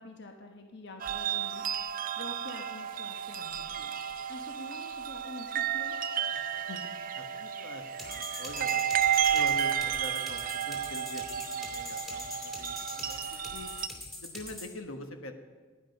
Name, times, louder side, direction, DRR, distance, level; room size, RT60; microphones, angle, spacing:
voice 1, 0.0-4.0 4.3-6.0, left 2 dB, 55° left, 3 dB, 1.1 m, -47 dB
sound 1, 1.0-13.9, right 9 dB, 40° right, 0.5 m, -32 dB
voice 2, 6.3-8.8 9.2-13.7 14.2-15.3, left 1 dB, 75° left, 6 dB, 1.3 m, -44 dB
sound 2, 8.0-14.7, left 1 dB, ahead, 2.5 m, -42 dB
18.0 x 10.0 x 5.3 m, 1.4 s
head